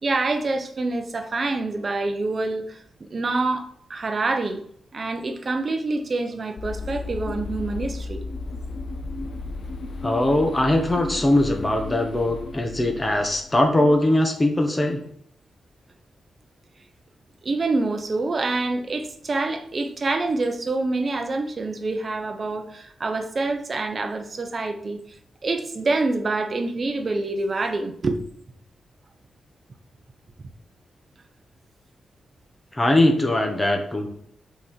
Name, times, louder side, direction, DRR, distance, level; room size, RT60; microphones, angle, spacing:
voice 1, 0.0-4.6 4.9-8.2 17.4-25.0 25.4-28.2, right 3 dB, 35° right, 5 dB, 0.9 m, -26 dB
sound 1, 6.6-14.0, left 3 dB, 60° left, 0.7 m, -34 dB
voice 2, 10.0-15.0 32.7-34.1, left 1 dB, 15° left, 4 dB, 0.9 m, -21 dB
6.1 x 4.2 x 6.3 m, 0.66 s
wide cardioid pair, 140°, 0 cm